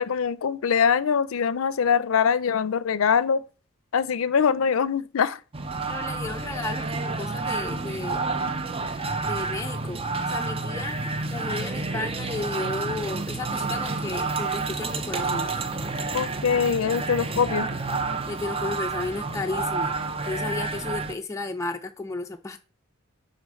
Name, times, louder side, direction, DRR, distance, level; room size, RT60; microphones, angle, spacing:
voice 1, 0.0-3.4 3.9-5.4 16.1-17.7, left 6 dB, 80° left, 0.5 m, -23 dB
sound 1, 5.5-21.1, right 3 dB, 25° right, 0.6 m, -29 dB
voice 2, 5.9-8.2 9.2-10.0 10.3-11.0 11.3-15.5 18.3-19.9 20.3-22.6, left 3 dB, 15° left, 0.5 m, -33 dB
6.3 x 4.1 x 6.4 m
head